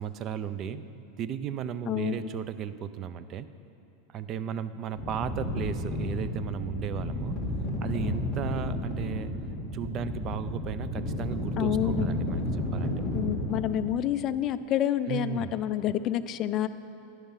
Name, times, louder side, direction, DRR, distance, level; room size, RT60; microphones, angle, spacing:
voice 1, 0.0-3.5 4.1-7.4 7.8-9.3 9.7-12.9 15.1-15.6, right 8 dB, 30° right, 13 dB, 0.4 m, -35 dB
voice 2, 1.9-2.2 11.6-12.1 13.1-16.7, left 11 dB, 30° left, 12 dB, 0.4 m, -28 dB
sound 1, 5.0-13.6, left 1 dB, 5° left, 2.1 m, -32 dB
11.0 x 10.5 x 5.6 m, 2.7 s
supercardioid pair, 160°, 0 cm